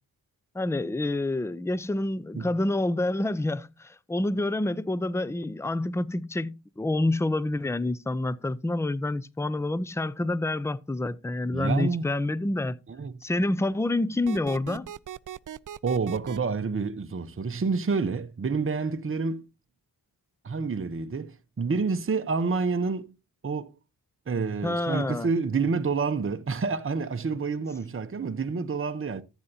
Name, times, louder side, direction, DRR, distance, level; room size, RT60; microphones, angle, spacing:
voice 1, 0.5-12.8 13.2-14.9 24.6-25.3, left 2 dB, 5° left, 0.6 m, -28 dB
voice 2, 11.5-12.1 12.9-13.1 15.8-19.4 20.4-23.1 23.4-23.7 24.3-29.2, right 4 dB, 30° right, 0.9 m, -28 dB
sound 1, 14.3-16.4, right 10 dB, 45° right, 0.5 m, -39 dB
13.5 x 8.1 x 2.8 m
cardioid pair, 50°, 45 cm